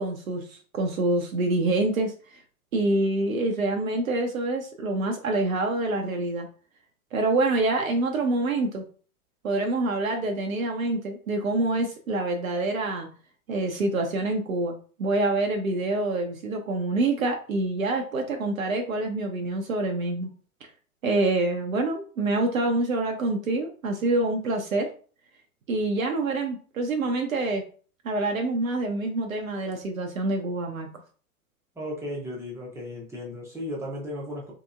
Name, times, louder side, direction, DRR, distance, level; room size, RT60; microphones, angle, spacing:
voice 1, 0.0-2.4 2.7-6.5 7.1-8.8 9.4-13.1 13.5-20.3 21.0-24.9 25.7-27.6 28.0-30.9, right 2 dB, 65° right, 3 dB, 0.7 m, -26 dB
voice 2, 31.8-34.5, left 1 dB, 5° right, -3 dB, 0.7 m, -35 dB
3.3 x 2.8 x 2.4 m, 0.41 s
figure-of-eight pair, 105°, 44 cm